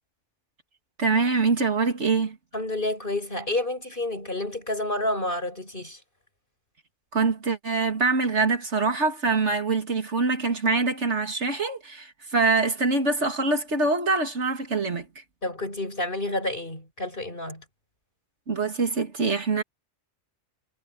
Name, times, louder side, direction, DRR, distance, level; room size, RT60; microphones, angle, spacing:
voice 1, 1.0-2.4 7.1-15.1 18.5-19.6, right 3 dB, 80° right, 2.8 m, -24 dB
voice 2, 2.5-6.0 15.4-17.6, left 2 dB, 50° left, 7.7 m, -29 dB
omnidirectional pair, 1.2 m